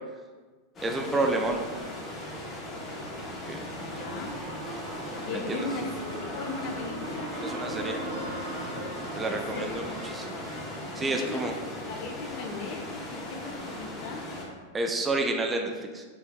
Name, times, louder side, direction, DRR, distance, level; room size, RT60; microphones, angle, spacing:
sound 1, 0.8-14.5, left 1 dB, 25° left, 1.1 m, -39 dB
voice 1, 0.8-1.6 3.5-3.6 5.5-5.7 7.4-8.0 9.2-10.4 11.0-11.5 14.7-16.0, right 2 dB, 15° right, 3 dB, 0.5 m, -29 dB
sound 2, 3.3-12.2, right 1 dB, 85° right, 1.3 m, -39 dB
voice 2, 3.8-4.3 5.2-7.3 9.2-9.8 10.7-14.3, left 3 dB, 45° left, 4 dB, 0.6 m, -38 dB
6.7 x 3.3 x 2.2 m, 1.4 s
figure-of-eight pair, 90°, 0 cm